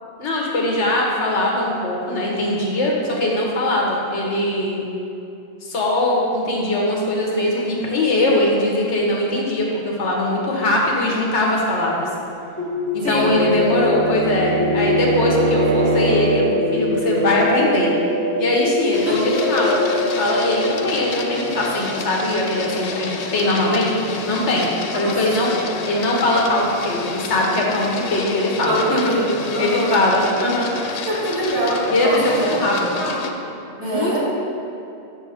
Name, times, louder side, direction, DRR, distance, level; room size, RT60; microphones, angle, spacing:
voice 1, 0.2-4.8 5.6-12.1 12.9-17.9 18.4-23.9 24.3-24.7 24.9-25.5 25.8-29.1 29.6-30.7 31.9-33.0 33.8-34.2, left 1 dB, 85° left, -2 dB, 1.4 m, -21 dB
sound 1, 12.6-24.3, left 2 dB, 15° left, 1.5 m, -24 dB
Bowed string instrument, 12.7-16.6, right 5 dB, 90° right, 1.0 m, -25 dB
voice 2, 13.0-13.4 19.0-19.7 24.9-25.1 25.4-25.6 28.6-29.9 31.0-33.5 33.8-34.2, right 1 dB, 70° right, -6 dB, 1.8 m, -24 dB
Printer, 18.9-33.3, left 5 dB, 60° left, 0.4 m, -31 dB
7.0 x 6.2 x 3.5 m, 2.6 s
omnidirectional pair, 1.2 m